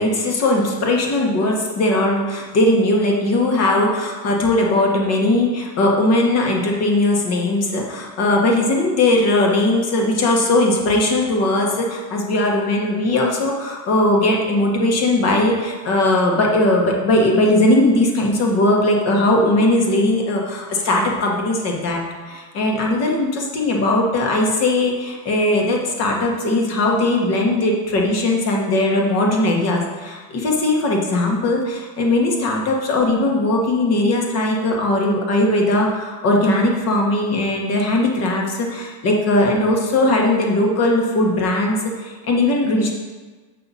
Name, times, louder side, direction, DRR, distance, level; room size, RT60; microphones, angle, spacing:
voice 1, 0.0-42.9, left 1 dB, 35° left, 0 dB, 1.3 m, -19 dB
7.7 x 5.6 x 4.1 m, 1.4 s
supercardioid pair, 155°, 47 cm